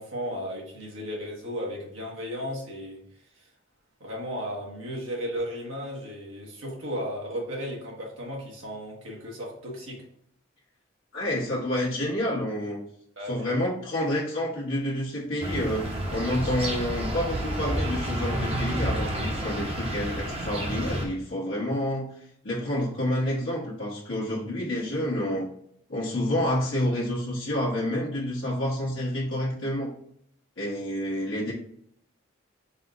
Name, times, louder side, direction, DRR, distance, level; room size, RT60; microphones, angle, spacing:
voice 1, 0.0-3.0 3.4-3.5 4.0-10.0 13.2-13.5 28.5-28.6, equal, 90° right, -3 dB, 1.4 m, -35 dB
voice 2, 11.1-12.8 13.3-22.1 22.4-25.5 25.9-29.9 30.6-31.5, left 1 dB, 75° left, -8 dB, 1.1 m, -28 dB
sound 1, 15.4-21.1, right 1 dB, 30° right, 0.8 m, -30 dB
4.1 x 2.5 x 3.9 m, 0.69 s
head